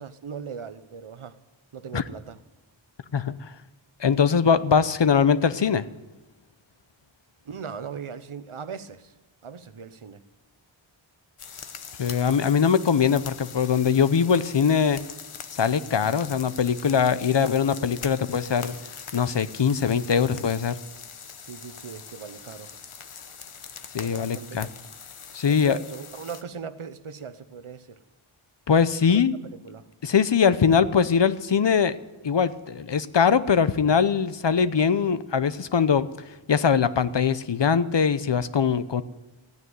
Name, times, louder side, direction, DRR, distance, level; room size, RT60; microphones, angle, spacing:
voice 1, 0.0-1.4 1.7-2.4 7.4-9.1 9.4-10.2 21.4-22.7 24.0-24.6 25.5-28.0 29.6-29.8, right 6 dB, 85° right, 12 dB, 1.0 m, -39 dB
voice 2, 4.0-5.8 12.0-15.0 15.5-18.8 19.1-20.8 23.9-24.7 25.3-25.8 28.7-29.4 30.0-32.0 32.2-36.1 36.5-39.0, left 6 dB, 60° left, 14 dB, 0.8 m, -22 dB
sound 1, 11.4-26.4, left 6 dB, 85° left, 1.0 m, -42 dB
14.5 x 9.7 x 9.3 m, 1.1 s
wide cardioid pair, 65°, 49 cm